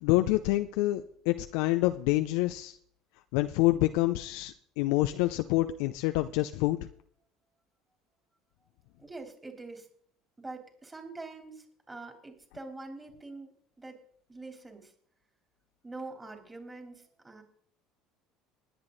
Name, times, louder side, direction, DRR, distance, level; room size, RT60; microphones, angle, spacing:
voice 1, 0.0-2.8 3.3-6.8, left 18 dB, 70° left, 8 dB, 0.5 m, -27 dB
voice 2, 9.0-9.9 10.4-14.0 14.3-14.9 15.8-17.4, right 3 dB, 20° right, 4 dB, 3.5 m, -44 dB
20.5 x 8.5 x 4.0 m, 0.63 s
hypercardioid pair, 65°, 0 cm